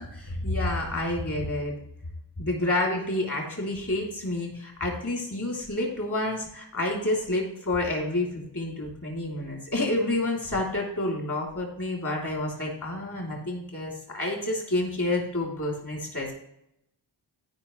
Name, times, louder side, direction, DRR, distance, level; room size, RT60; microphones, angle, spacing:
voice 1, 0.0-1.7 2.4-8.3 8.5-16.3, left 1 dB, 40° left, -1 dB, 3.3 m, -29 dB
13.5 x 5.5 x 3.2 m, 0.79 s
wide cardioid pair, 100°, 46 cm